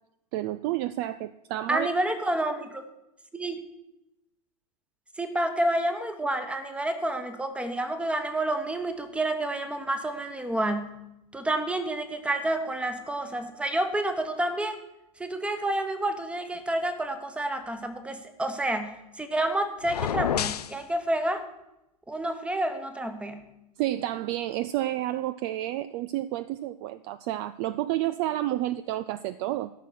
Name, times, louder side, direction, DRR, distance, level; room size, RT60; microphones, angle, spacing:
voice 1, 0.3-1.9 23.8-29.7, right 14 dB, 40° right, 15 dB, 0.4 m, -30 dB
voice 2, 1.7-2.8 3.3-3.6 5.2-10.9 11.3-14.8 15.2-21.4 22.1-23.4, right 1 dB, 5° right, 9 dB, 1.1 m, -29 dB
sound 1, 19.8-20.8, left 9 dB, 80° left, 0.4 m, -28 dB
13.5 x 5.8 x 6.3 m, 0.89 s
figure-of-eight pair, 95°, 20 cm